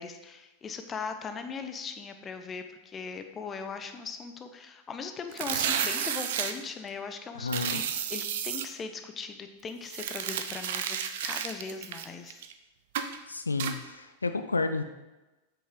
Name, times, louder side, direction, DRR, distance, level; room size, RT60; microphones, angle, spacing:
voice 1, 0.0-7.8 8.1-12.4, left 5 dB, 20° left, 7 dB, 0.7 m, -39 dB
sound 1, 5.3-6.5 7.5-8.6 9.8-12.5 12.9-13.2 13.6-13.7, right 8 dB, 55° right, 0.6 m, -32 dB
voice 2, 7.4-7.8 13.3-14.8, left 3 dB, 80° left, 8 dB, 0.4 m, -31 dB
7.9 x 6.4 x 3.7 m, 1.1 s
figure-of-eight pair, 90°, 0 cm